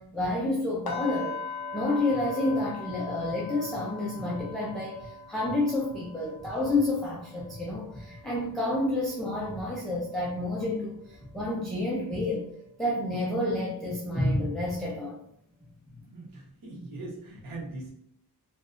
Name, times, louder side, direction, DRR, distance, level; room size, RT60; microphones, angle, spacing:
voice 1, 0.0-1.3 1.7-12.5 12.8-15.2 15.9-16.0, left 2 dB, ahead, -4 dB, 0.3 m, -29 dB
sound 1, 0.9-10.8 11.1-11.4 11.8-12.0, left 3 dB, 70° left, 0.5 m, -42 dB
voice 2, 16.1-17.9, right 2 dB, 60° right, -4 dB, 0.8 m, -41 dB
2.6 x 2.1 x 2.4 m, 0.72 s
wide cardioid pair, 175°, 38 cm